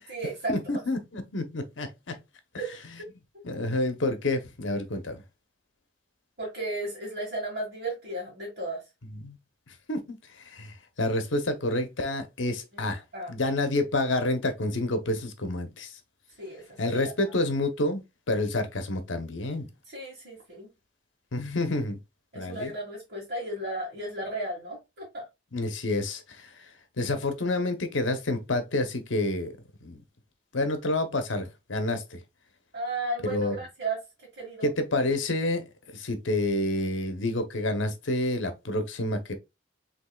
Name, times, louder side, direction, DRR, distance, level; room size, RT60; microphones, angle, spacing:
voice 1, 0.1-0.6 2.6-2.8 6.4-8.8 12.7-12.8 13.1-13.3 16.4-17.1 19.9-20.7 22.3-25.3 32.7-34.0 34.4-34.7, right 2 dB, 55° right, 2.0 m, -34 dB
voice 2, 0.7-2.2 3.4-5.2 9.1-9.4 9.7-10.0 10.4-13.0 13.3-15.9 16.8-19.7 21.3-22.0 22.3-22.7 25.5-26.7 27.0-29.5 29.8-30.0 30.5-32.2 33.2-33.5 34.6-39.3, left 2 dB, 75° left, 0.9 m, -29 dB
5.3 x 3.5 x 2.3 m
head